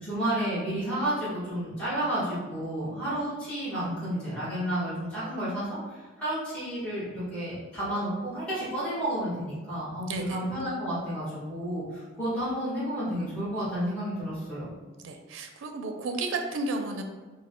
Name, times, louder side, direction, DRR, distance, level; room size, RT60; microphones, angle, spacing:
voice 1, 0.0-14.7, right 1 dB, 5° left, -12 dB, 1.5 m, -31 dB
voice 2, 10.1-10.4 15.0-17.0, right 2 dB, 80° right, 5 dB, 0.4 m, -32 dB
4.7 x 2.2 x 3.6 m, 1.3 s
head